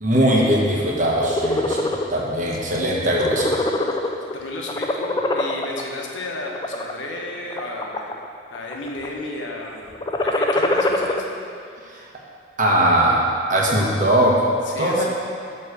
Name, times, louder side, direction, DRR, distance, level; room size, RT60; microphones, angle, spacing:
voice 1, 0.0-3.5 11.9-12.0 12.6-14.4 14.8-15.1, right 1 dB, 45° right, -2 dB, 1.1 m, -20 dB
sound 1, 1.1-2.1 2.5-2.8 3.1-4.3 4.7-5.8 6.4-6.9 7.5-8.3 8.5-9.1 9.9-11.2, left 2 dB, 20° left, 0.3 m, -23 dB
voice 2, 4.3-8.2 8.5-9.9 10.2-11.9 14.6-15.1, left 2 dB, 75° left, -1 dB, 1.0 m, -33 dB
9.3 x 3.2 x 6.5 m, 2.4 s
head